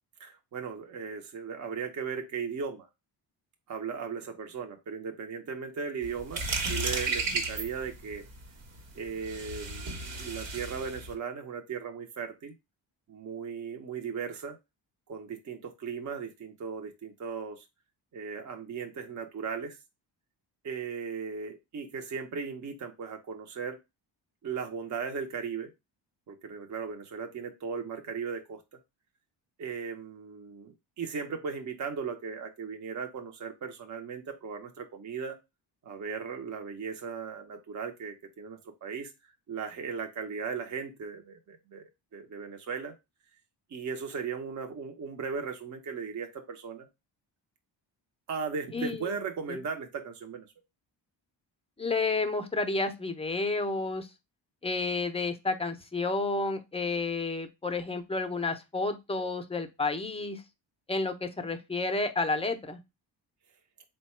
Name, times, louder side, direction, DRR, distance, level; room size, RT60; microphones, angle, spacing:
voice 1, 0.2-2.9 3.7-8.2 8.9-12.5 13.1-14.6 15.1-17.6 18.1-19.8 20.6-23.8 24.4-25.7 26.3-28.6 29.6-35.4 35.8-39.1 39.5-41.8 42.1-42.9 43.7-46.9 48.3-50.5, right 6 dB, 40° right, 5 dB, 0.6 m, -37 dB
sound 1, 6.0-11.1, right 3 dB, 80° right, 1.1 m, -34 dB
voice 2, 48.7-49.2 49.5-49.6 51.8-54.1 54.6-60.4 60.9-62.8, left 3 dB, 15° left, 8 dB, 0.5 m, -31 dB
3.9 x 2.2 x 4.1 m, 0.23 s
cardioid pair, 130°, 44 cm